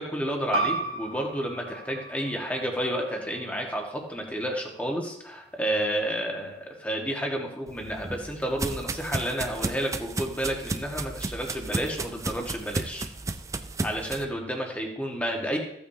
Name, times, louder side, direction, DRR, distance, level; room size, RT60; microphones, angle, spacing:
voice 1, 0.0-13.1 13.8-15.6, equal, 10° left, 1 dB, 1.4 m, -31 dB
sound 1, 0.5-5.7, right 2 dB, 60° right, 1.5 m, -35 dB
sound 2, 7.7-14.2, right 3 dB, 20° right, 0.4 m, -33 dB
14.5 x 8.7 x 2.8 m, 0.82 s
head